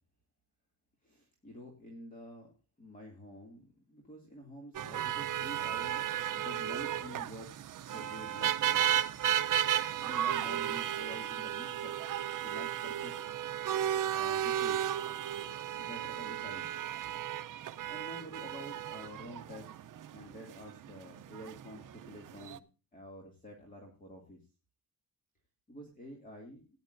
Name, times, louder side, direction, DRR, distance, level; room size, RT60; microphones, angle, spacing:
voice 1, 1.0-2.5 2.8-9.0 10.0-12.0 12.4-13.1 14.1-14.8 15.7-16.7 17.9-19.7 20.1-22.7 22.9-24.4 25.7-26.7, equal, 20° left, 0 dB, 2.3 m, -48 dB
sound 1, 4.7-22.6, right 11 dB, 60° right, 0.6 m, -34 dB
17.5 x 10.0 x 2.5 m, 0.32 s
wide cardioid pair, 175°, 36 cm